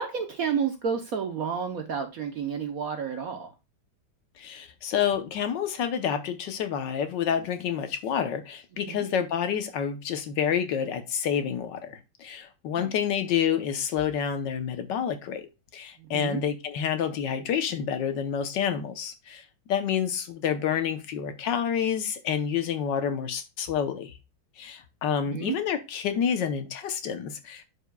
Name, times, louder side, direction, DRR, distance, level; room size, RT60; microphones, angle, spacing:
voice 1, 0.0-3.5 8.9-9.0 12.8-12.9 16.0-16.4 25.3-25.5, right 6 dB, 60° right, 1.0 m, -30 dB
voice 2, 4.4-15.5 15.7-24.1 24.6-27.6, left 8 dB, 70° left, 1.4 m, -28 dB
11.0 x 5.0 x 2.2 m
omnidirectional pair, 2.2 m